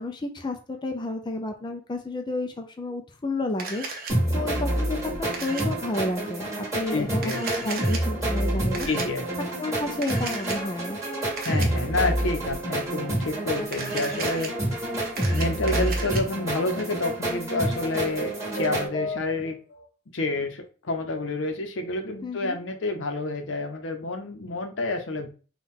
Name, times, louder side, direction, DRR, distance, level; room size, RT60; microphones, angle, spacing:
voice 1, 0.0-8.9 9.4-11.0 22.2-22.6, left 2 dB, 25° left, 4 dB, 0.4 m, -31 dB
Camera, 3.6-4.1 5.3-5.6 7.1-8.0 8.7-9.0 10.0-10.6 11.4-11.7 13.6-14.5 15.0-16.2, right 4 dB, 50° right, 0.7 m, -35 dB
sound 1, 4.1-18.9, right 1 dB, 15° right, 1.4 m, -28 dB
voice 2, 6.9-7.7 8.9-9.3 11.4-14.5 15.3-19.6 20.1-25.3, left 2 dB, 75° left, 6 dB, 0.7 m, -29 dB
sound 2, 17.8-19.8, equal, 40° left, 1.0 m, -34 dB
4.3 x 2.3 x 3.6 m, 0.36 s
head